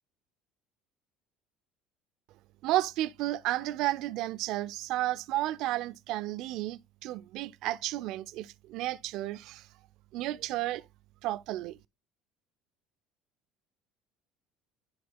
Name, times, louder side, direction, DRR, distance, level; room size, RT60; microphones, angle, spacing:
voice 1, 2.6-9.7 10.1-10.9 11.2-11.8, right 15 dB, 65° right, 0.3 m, -32 dB
10.0 x 4.7 x 2.2 m
cardioid pair, 125°, 0 cm